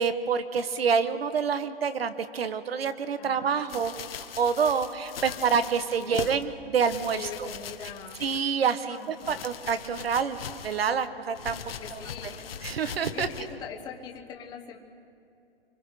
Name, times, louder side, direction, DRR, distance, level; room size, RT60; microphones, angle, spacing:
voice 1, 0.0-7.3 8.2-10.4 10.6-11.6 11.9-12.0 12.6-13.3, right 6 dB, 75° right, 11 dB, 1.5 m, -27 dB
voice 2, 3.2-3.6 5.2-5.5 6.0-6.3 7.2-8.2 8.9-9.4 11.6-12.5 13.1-14.8, left 7 dB, 15° left, 2 dB, 1.1 m, -42 dB
sound 1, 3.7-6.4 6.8-8.6 8.9-11.0 11.4-13.5 14.2-14.3, left 7 dB, 70° left, 1.3 m, -40 dB
25.0 x 24.5 x 5.0 m, 2.6 s
hypercardioid pair, 155°, 30 cm